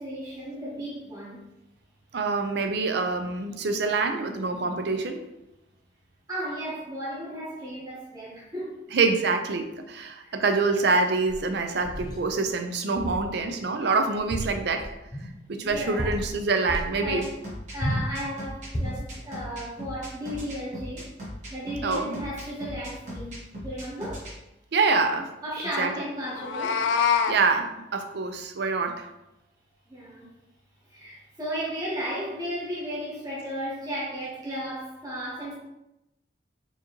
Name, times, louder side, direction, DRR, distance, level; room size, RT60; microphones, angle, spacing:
voice 1, 0.0-1.4 6.3-8.8 10.2-10.4 15.6-16.2 16.7-17.3 17.7-21.1 21.5-24.3 25.4-26.8 29.9-30.4 30.9-35.5, equal, 20° right, -6 dB, 1.0 m, -34 dB
voice 2, 2.1-5.2 8.9-14.9 15.2-17.2 21.8-22.2 24.7-25.3 25.8-25.9 27.3-29.1, right 4 dB, 60° right, 6 dB, 0.4 m, -26 dB
sound 1, 11.3-12.3 13.0-13.3 13.6-13.7 14.2-15.3 15.7-16.3 16.7-16.9 17.8-18.1 18.7-19.1, equal, 20° left, 0.6 m, -32 dB
sound 2, 17.0-24.3, equal, 40° right, 1.3 m, -38 dB
Meow, 26.3-27.4, left 7 dB, 65° left, 0.3 m, -24 dB
4.5 x 2.7 x 3.0 m, 0.91 s
head